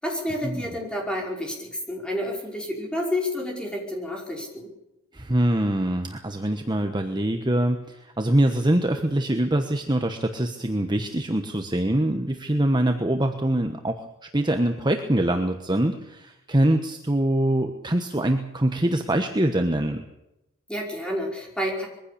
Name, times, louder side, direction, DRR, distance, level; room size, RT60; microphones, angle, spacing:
voice 1, 0.0-4.7 20.7-21.9, left 1 dB, 5° left, -1 dB, 5.3 m, -29 dB
voice 2, 5.1-14.0 14.3-20.0, right 1 dB, 20° right, 5 dB, 1.2 m, -24 dB
22.5 x 15.5 x 8.6 m, 0.89 s
head